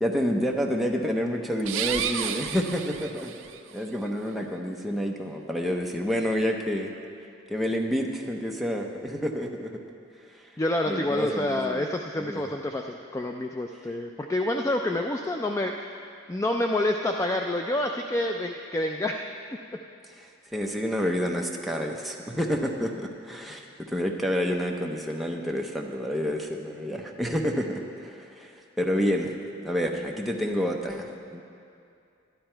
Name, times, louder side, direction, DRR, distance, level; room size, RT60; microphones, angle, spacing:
voice 1, 0.0-3.3 3.7-6.9 7.5-9.7 10.3-10.4 10.9-11.8 12.2-12.4 20.2-23.6 23.9-28.5 28.8-29.3 29.6-31.4, equal, ahead, 0 dB, 0.8 m, -29 dB
sound 1, 1.6-3.6, right 9 dB, 75° right, 0.5 m, -31 dB
voice 2, 10.6-15.9 16.3-19.2, left 1 dB, 15° left, 3 dB, 0.3 m, -28 dB
11.5 x 11.5 x 4.5 m, 2.5 s
head